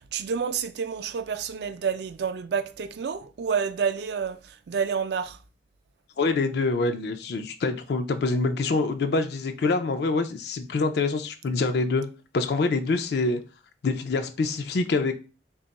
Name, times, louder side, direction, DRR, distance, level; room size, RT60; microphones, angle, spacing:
voice 1, 0.0-5.4, right 6 dB, 65° right, 0.4 m, -29 dB
voice 2, 6.2-12.1 12.3-13.4 13.8-15.1, left 3 dB, 65° left, 0.4 m, -25 dB
3.5 x 2.3 x 3.9 m
head